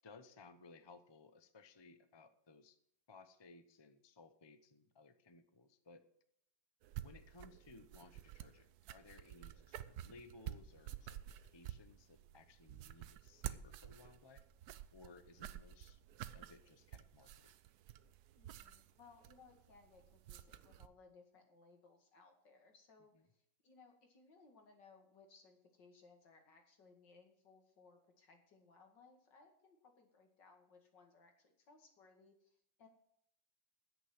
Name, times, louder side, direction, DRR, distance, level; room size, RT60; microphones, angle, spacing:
voice 1, 0.0-2.8 3.1-6.0 7.0-11.2 11.5-14.4 14.9-16.0 16.3-17.5 23.1-23.2, left 3 dB, 35° left, 10 dB, 0.4 m, -60 dB
sound 1, 6.8-20.9, right 11 dB, 65° right, 1.1 m, -51 dB
voice 2, 18.4-32.9, left 4 dB, 65° left, 3 dB, 2.7 m, -65 dB
10.0 x 8.3 x 7.8 m, 0.70 s
omnidirectional pair, 2.1 m